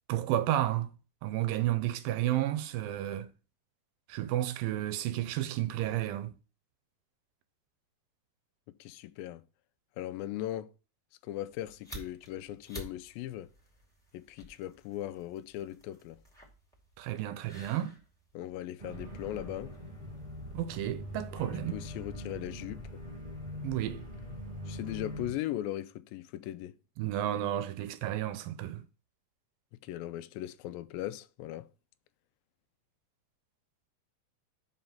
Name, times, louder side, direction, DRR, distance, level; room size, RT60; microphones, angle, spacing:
voice 1, 0.1-0.9 1.2-3.3 4.1-6.3 17.0-18.0 20.5-21.8 23.6-24.1 27.0-28.9, right 13 dB, 90° right, 2.4 m, -32 dB
voice 2, 8.7-9.4 10.0-10.7 11.2-13.5 14.1-16.2 18.3-19.7 21.7-23.0 24.7-26.8 29.8-31.7, left 13 dB, 85° left, 2.3 m, -38 dB
sound 1, 11.5-20.6, right 1 dB, ahead, 1.5 m, -52 dB
sound 2, 18.8-25.3, equal, 20° right, 1.2 m, -42 dB
5.7 x 5.2 x 5.7 m
omnidirectional pair, 4.1 m